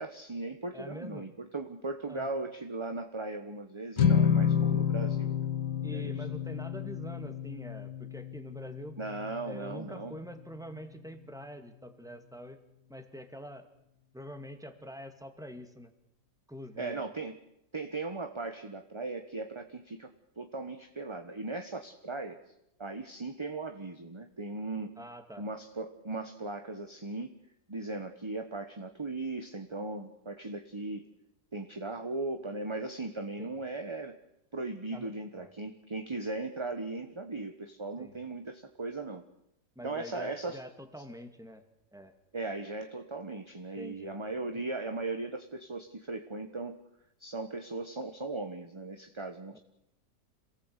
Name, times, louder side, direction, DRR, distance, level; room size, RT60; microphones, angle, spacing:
voice 1, 0.0-5.5 5.8-6.2 9.0-10.1 16.8-17.4 17.7-20.1 20.4-22.4 22.8-25.0 25.4-27.4 27.7-31.1 31.5-34.1 34.5-39.2 39.8-40.6 42.3-46.8 47.2-49.6, right 3 dB, 20° right, 6 dB, 1.1 m, -38 dB
voice 2, 0.7-1.3 2.1-2.3 5.8-9.0 9.5-12.6 12.9-13.7 14.1-15.9 16.5-17.0 25.0-25.4 33.4-33.5 34.9-35.1 35.4-35.5 38.0-38.1 39.8-41.6 41.9-42.1 43.8-44.1 49.5-49.6, equal, ahead, 6 dB, 2.2 m, -45 dB
sound 1, 4.0-10.4, left 8 dB, 75° left, 1.7 m, -30 dB
27.5 x 18.0 x 8.3 m, 0.84 s
omnidirectional pair, 1.8 m